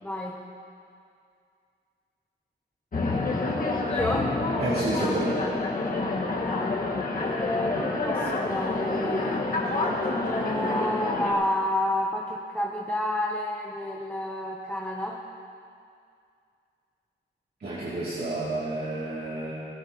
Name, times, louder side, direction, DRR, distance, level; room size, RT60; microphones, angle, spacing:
voice 1, 0.0-0.4 3.9-4.3 7.2-15.2, left 1 dB, 10° left, -1 dB, 0.7 m, -30 dB
sound 1, 2.9-11.3, left 2 dB, 45° left, 1.6 m, -28 dB
voice 2, 4.6-5.4 17.6-19.5, right 2 dB, 55° right, -9 dB, 2.7 m, -30 dB
18.5 x 17.5 x 3.0 m, 2.4 s
wide cardioid pair, 175°, 19 cm